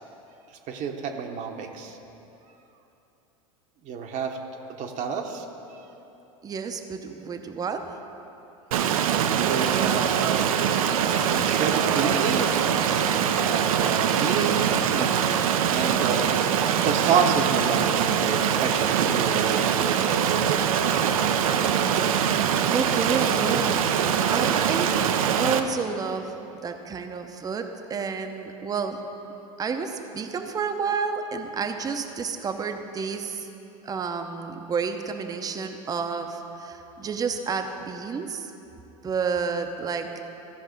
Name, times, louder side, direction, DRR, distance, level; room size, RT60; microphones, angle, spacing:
voice 1, 0.7-2.0 3.8-4.4 4.8-5.5 9.4-10.3 11.3-12.5 13.4-15.1 15.7-20.3, right 6 dB, 45° right, 3 dB, 0.9 m, -29 dB
voice 2, 6.4-8.0 14.3-14.8 22.7-23.8 24.2-24.9 25.4-26.4 26.6-29.0 29.6-33.5 33.8-38.5 39.0-40.3, right 5 dB, 20° right, 6 dB, 0.7 m, -30 dB
Stream, 8.7-25.6, right 8 dB, 85° right, 0.6 m, -23 dB
14.5 x 5.3 x 5.2 m, 3.0 s
hypercardioid pair, 105°, 18 cm